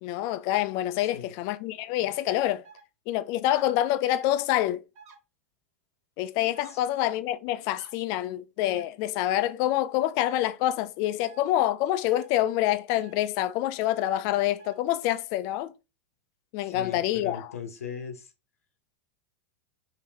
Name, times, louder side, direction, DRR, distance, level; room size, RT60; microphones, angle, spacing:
voice 1, 0.0-2.6 3.1-4.8 6.2-15.7 16.5-17.5, left 13 dB, 50° left, 0.4 m, -27 dB
voice 2, 1.0-1.3 6.6-6.8 16.6-18.3, left 7 dB, 85° left, 0.8 m, -39 dB
sound 1, 2.6-2.8 3.4-3.6 4.2-4.4 4.9-5.2 6.5-6.7 7.7-7.9 8.6-8.8 10.3-10.5 11.2-11.4 12.0-12.3 12.9-13.1 14.0-14.1 14.6-14.7, right 5 dB, 45° right, 1.4 m, -51 dB
3.2 x 2.8 x 3.4 m
hypercardioid pair, 95°, 8 cm